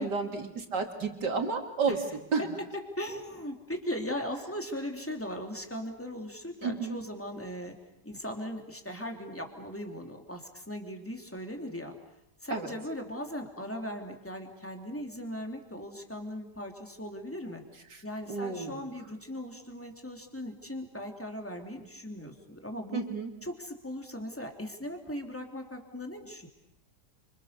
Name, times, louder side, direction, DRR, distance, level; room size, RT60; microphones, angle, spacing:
voice 1, 0.0-2.5 6.6-7.0 12.5-12.7 17.9-18.0 18.3-18.8 22.9-23.3, right 4 dB, 85° right, 5 dB, 3.3 m, -31 dB
voice 2, 3.0-7.8 8.0-11.9 12.4-17.6 18.0-23.0 23.4-26.5, equal, 5° left, 4 dB, 3.1 m, -38 dB
30.0 x 26.5 x 6.8 m, 0.82 s
omnidirectional pair, 1.8 m